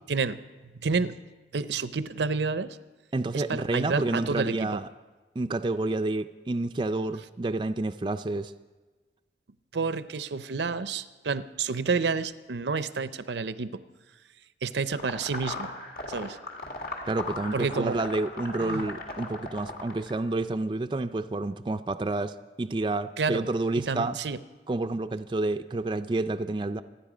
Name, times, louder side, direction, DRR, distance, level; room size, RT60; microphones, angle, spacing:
voice 1, 0.1-1.2 1.5-2.8 3.3-4.8 9.7-13.8 14.6-15.7 16.1-16.4 17.5-18.0 18.6-18.9 23.2-23.5 23.8-24.4, right 4 dB, 80° right, 14 dB, 0.6 m, -30 dB
voice 2, 3.1-4.9 5.4-8.5 17.1-24.2 24.7-26.8, right 2 dB, 25° right, 8 dB, 0.4 m, -29 dB
sound 1, 14.9-20.2, left 2 dB, 55° left, 2.2 m, -37 dB
27.0 x 10.5 x 5.0 m, 1.3 s
head